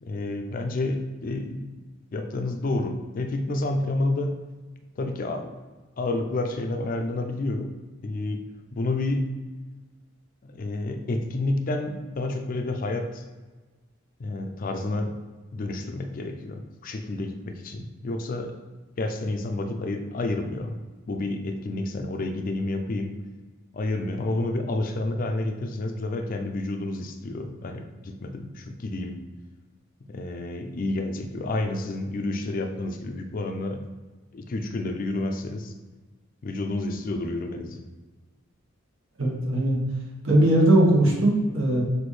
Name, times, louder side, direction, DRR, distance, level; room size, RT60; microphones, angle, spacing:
voice 1, 0.0-1.8 2.1-4.4 5.0-5.5 6.0-7.7 8.0-8.5 8.7-9.4 10.4-13.2 14.2-15.2 15.5-18.6 19.0-20.8 21.1-23.2 23.7-29.2 30.1-33.9 34.3-35.7 36.4-37.8, left 2 dB, 40° left, 5 dB, 0.4 m, -29 dB
voice 2, 39.2-39.8 40.2-41.8, right 1 dB, 75° right, -2 dB, 1.2 m, -19 dB
5.9 x 2.6 x 3.2 m, 1.3 s
head